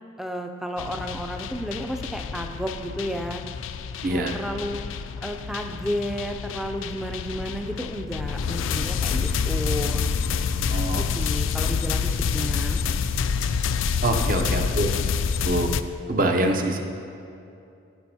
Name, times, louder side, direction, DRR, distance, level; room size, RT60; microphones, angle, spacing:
voice 1, 0.2-3.4 4.0-4.8 5.2-10.1 11.0-12.8 14.3-14.6, equal, ahead, 4 dB, 0.3 m, -32 dB
sound 1, 0.8-15.8, left 6 dB, 85° left, 0.3 m, -27 dB
voice 2, 4.0-4.4 10.7-11.1 14.0-14.9 15.4-15.7 16.1-16.8, right 1 dB, 45° right, 4 dB, 0.6 m, -24 dB
14.0 x 6.1 x 2.8 m, 2.6 s
head